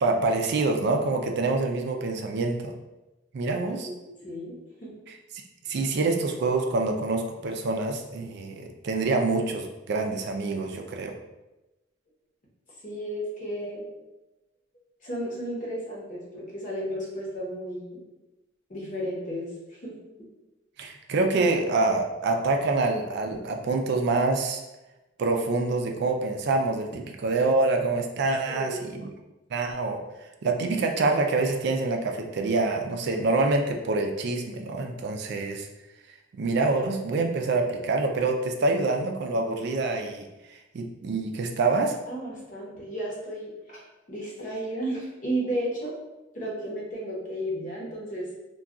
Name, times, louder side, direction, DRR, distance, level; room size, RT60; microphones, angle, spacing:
voice 1, 0.0-2.7 3.3-3.9 5.7-11.1 20.8-24.6 25.2-29.1 29.5-30.0 30.4-35.7 36.4-40.3 40.7-41.9, right 3 dB, 60° right, 3 dB, 0.4 m, -26 dB
voice 2, 3.9-4.9 12.8-13.8 15.0-18.0 18.7-19.9 28.4-28.8 42.0-43.8 44.1-45.9 46.3-48.3, right 1 dB, 45° left, -4 dB, 0.9 m, -33 dB
2.3 x 2.3 x 3.7 m, 1.0 s
head